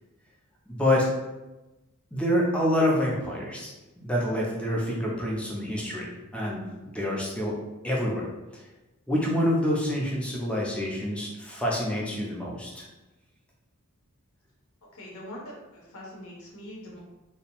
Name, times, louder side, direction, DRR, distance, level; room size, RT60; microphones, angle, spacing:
voice 1, 0.7-1.1 2.1-3.7 4.0-7.5 7.8-8.3 8.5-8.6 9.1-12.9, left 1 dB, 5° left, -3 dB, 0.4 m, -27 dB
voice 2, 14.9-17.0, left 1 dB, 65° left, -3 dB, 0.7 m, -43 dB
2.6 x 2.0 x 2.8 m, 1.1 s
head